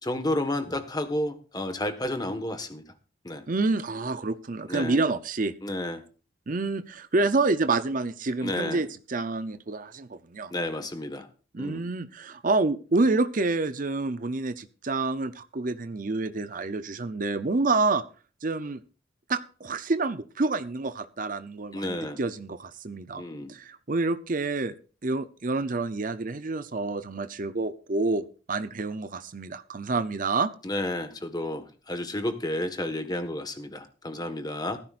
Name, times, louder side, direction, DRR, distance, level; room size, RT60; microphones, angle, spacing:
voice 1, 0.0-2.8 3.2-3.4 4.7-5.0 5.6-6.0 8.4-8.8 10.5-11.3 11.6-11.8 21.7-22.2 23.2-23.5 30.6-34.8, left 1 dB, 20° left, 8 dB, 1.5 m, -31 dB
voice 2, 3.5-5.5 6.5-10.5 11.5-18.0 18.4-18.8 19.3-23.2 23.5-24.8 25.0-30.5, right 3 dB, 45° right, 12 dB, 0.7 m, -28 dB
16.5 x 14.5 x 2.5 m, 0.37 s
head